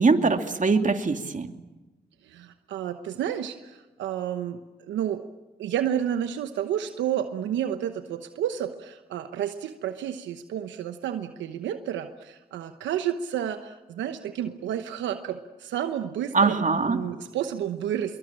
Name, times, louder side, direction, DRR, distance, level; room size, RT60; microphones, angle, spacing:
voice 1, 0.0-1.5 16.3-17.0, right 4 dB, 45° right, 6 dB, 2.6 m, -22 dB
voice 2, 2.2-4.6 4.9-5.2 5.6-18.2, right 10 dB, 90° right, 9 dB, 1.0 m, -31 dB
25.5 x 23.0 x 8.8 m, 1.1 s
supercardioid pair, 40°, 19 cm